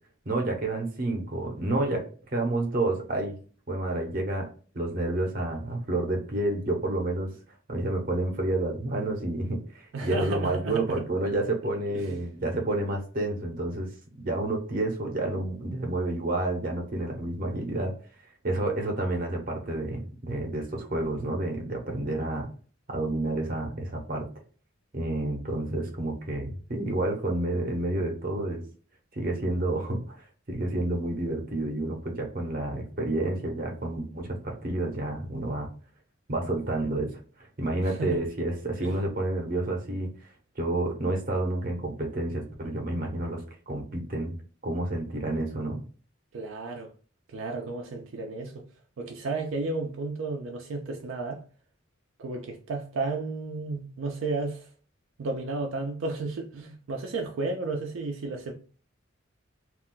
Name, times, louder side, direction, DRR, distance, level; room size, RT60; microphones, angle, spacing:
voice 1, 0.3-2.0 2.3-3.4 3.7-4.5 4.7-7.4 7.7-17.9 18.4-22.5 22.9-24.3 24.9-28.6 29.1-35.7 36.3-37.1 37.6-40.1 40.6-44.4 44.6-45.8, right 2 dB, 45° right, 0.7 m, -29 dB
voice 2, 9.9-11.0 11.9-12.2 37.9-38.2 38.8-39.0 46.3-46.9 47.3-48.6 49.0-51.4 52.2-54.7 55.2-58.5, right 3 dB, 75° right, 0.4 m, -33 dB
2.4 x 2.2 x 3.7 m
head